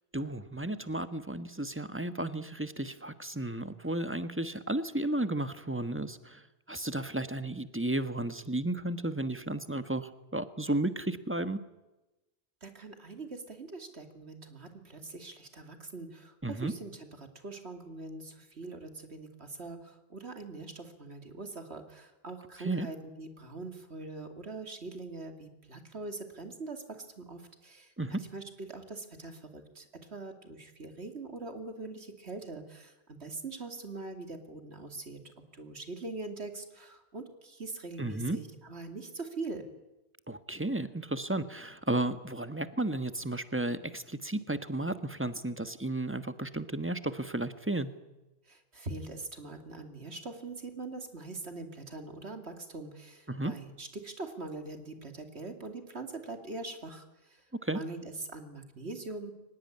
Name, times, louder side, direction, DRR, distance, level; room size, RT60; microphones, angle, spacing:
voice 1, 0.1-6.4 6.7-11.6 16.4-16.7 22.6-22.9 28.0-28.2 38.0-38.4 40.3-47.9 53.3-53.5 57.6-57.8, right 1 dB, 10° right, 10 dB, 1.3 m, -33 dB
voice 2, 12.6-39.7 48.5-57.4 57.7-59.3, right 3 dB, 85° right, 6 dB, 2.9 m, -43 dB
23.5 x 20.0 x 9.9 m, 1.0 s
omnidirectional pair, 1.1 m